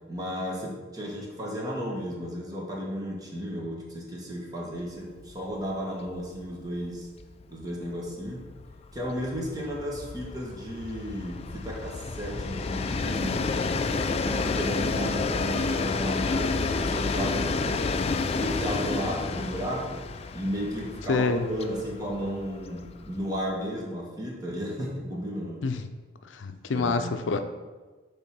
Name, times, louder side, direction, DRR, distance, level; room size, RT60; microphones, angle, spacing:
voice 1, 0.1-7.1 7.5-8.4 8.9-13.6 14.0-17.8 18.3-20.0 20.3-25.6 26.7-27.4, equal, 20° right, -3 dB, 1.5 m, -34 dB
Train, 5.2-5.4 5.7-5.8 6.1-23.5, left 4 dB, 35° left, 0.4 m, -30 dB
voice 2, 21.1-21.5 25.6-25.9 26.2-27.4, left 4 dB, 90° left, 9 dB, 0.5 m, -27 dB
7.9 x 3.7 x 6.0 m, 1.3 s
head